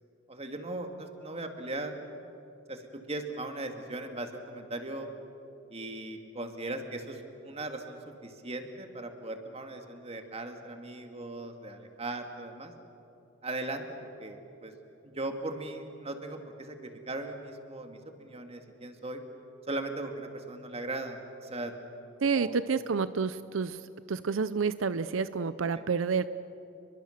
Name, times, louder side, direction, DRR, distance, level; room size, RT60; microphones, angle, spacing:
voice 1, 0.3-1.9 2.7-5.1 5.7-12.7 13.4-13.8 14.2-14.7 15.0-19.2 19.7-21.7 22.3-22.6, right 2 dB, 30° right, 5 dB, 2.1 m, -38 dB
voice 2, 22.2-23.8 24.1-26.3, right 5 dB, 85° right, 14 dB, 0.6 m, -29 dB
30.0 x 22.5 x 6.6 m, 2.8 s
head